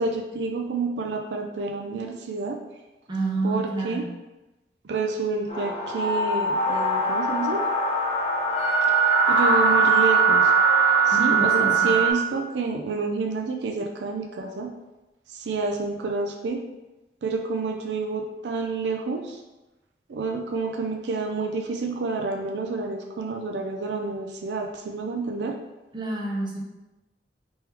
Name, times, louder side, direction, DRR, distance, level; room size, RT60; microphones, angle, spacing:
voice 1, 0.0-2.6 3.4-4.0 4.8-7.6 8.8-8.9 9.3-10.5 11.1-14.7 15.3-16.6 17.2-19.4 20.1-25.5, right 3 dB, 75° right, 3 dB, 0.4 m, -29 dB
voice 2, 3.1-4.1 11.1-11.9 25.9-26.6, right 2 dB, 25° right, -2 dB, 0.7 m, -29 dB
sound 1, 5.5-12.1, right 4 dB, 35° left, 0.9 m, -21 dB
3.5 x 3.0 x 3.3 m, 1.1 s
head